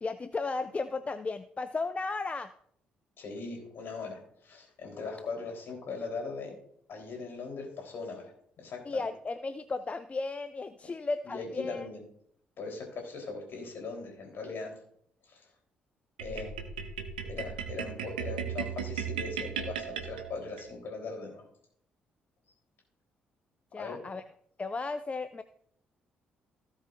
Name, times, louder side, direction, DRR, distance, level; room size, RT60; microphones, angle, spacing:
voice 1, 0.0-2.5 8.8-11.9 23.7-24.2 24.6-25.4, left 3 dB, 30° left, 12 dB, 0.6 m, -34 dB
voice 2, 3.2-6.5 6.9-8.3 8.6-9.0 11.3-12.0 12.6-14.8 15.3-15.5 16.2-16.5 17.2-21.4 23.8-24.0, left 4 dB, 55° left, 1 dB, 3.8 m, -40 dB
sound 1, 16.2-20.7, right 7 dB, 80° right, 0.8 m, -36 dB
16.5 x 7.4 x 2.6 m, 0.66 s
figure-of-eight pair, 40°, 5 cm